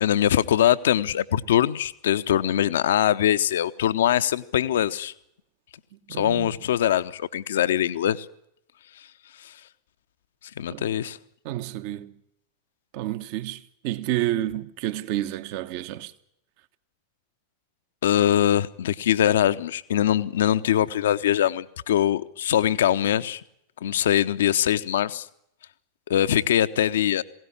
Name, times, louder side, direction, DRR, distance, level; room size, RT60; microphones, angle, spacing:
voice 1, 0.0-5.1 6.2-8.3 9.4-9.5 10.6-11.2 18.0-23.4 23.8-25.3 26.1-27.2, left 11 dB, 60° left, 0.8 m, -22 dB
voice 2, 6.1-6.5 10.7-10.9 11.4-12.1 12.9-16.1, right 14 dB, 45° right, 1.2 m, -30 dB
21.0 x 17.5 x 9.9 m
figure-of-eight pair, 90°, 0 cm